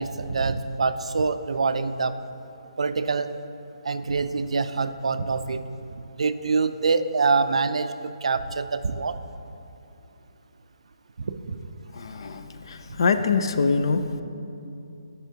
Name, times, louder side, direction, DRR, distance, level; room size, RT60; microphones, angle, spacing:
voice 1, 0.0-2.1 2.8-3.3 3.8-5.6 6.2-7.9 8.2-9.1 11.2-11.6, right 4 dB, 85° right, 11 dB, 0.4 m, -25 dB
voice 2, 11.9-14.2, left 4 dB, 50° left, 9 dB, 0.4 m, -24 dB
9.3 x 5.5 x 2.8 m, 2.7 s
hypercardioid pair, 170°, 3 cm